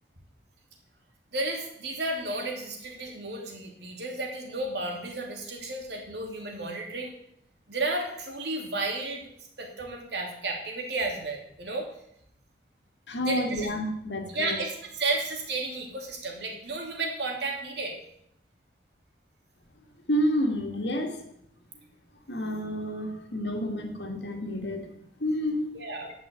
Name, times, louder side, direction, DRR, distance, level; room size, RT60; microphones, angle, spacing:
voice 1, 1.3-7.1 7.7-9.3 9.6-11.9 13.2-13.7 14.3-18.0 25.7-26.1, right 2 dB, 70° right, 1 dB, 2.8 m, -32 dB
voice 2, 13.1-14.6 20.1-21.2 22.3-24.9 25.2-25.7, equal, 75° left, 4 dB, 1.9 m, -29 dB
10.5 x 6.1 x 8.3 m, 0.73 s
head